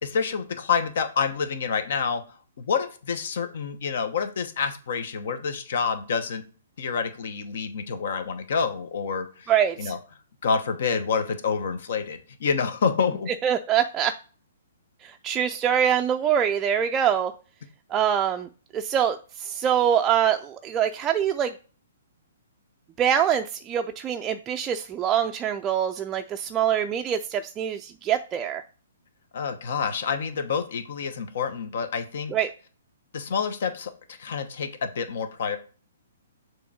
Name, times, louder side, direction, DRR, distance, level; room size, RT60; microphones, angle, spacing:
voice 1, 0.0-2.2 2.6-6.4 6.8-9.5 9.8-10.0 10.4-13.3 29.3-32.3 33.1-35.6, left 6 dB, 60° left, 9 dB, 1.0 m, -28 dB
voice 2, 9.5-9.9 13.4-14.1 15.0-17.3 17.9-21.5 23.0-28.6 32.3-32.5, right 9 dB, 20° right, 5 dB, 0.4 m, -24 dB
6.9 x 3.1 x 4.9 m, 0.39 s
hypercardioid pair, 130°, 0 cm